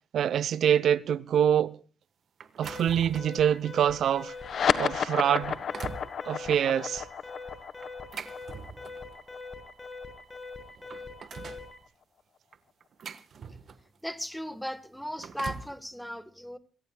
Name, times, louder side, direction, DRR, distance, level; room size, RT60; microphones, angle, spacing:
voice 1, 0.1-1.8 2.6-5.5 6.2-7.1, right 9 dB, 75° right, 0.8 m, -25 dB
sound 1, 2.4-3.4 4.0-4.2 4.8-4.9 5.3-6.1 7.8-9.1 10.2-10.3 10.6-11.7 12.5-14.0 14.9-15.8, right 6 dB, 60° right, 1.3 m, -42 dB
Alarm, 2.6-11.8, left 3 dB, 20° left, 7.4 m, -43 dB
sound 2, 4.3-11.2, left 7 dB, 65° left, 1.3 m, -32 dB
voice 2, 14.0-16.6, equal, ahead, 1.5 m, -36 dB
26.5 x 18.5 x 2.3 m
cardioid pair, 100°, 0 cm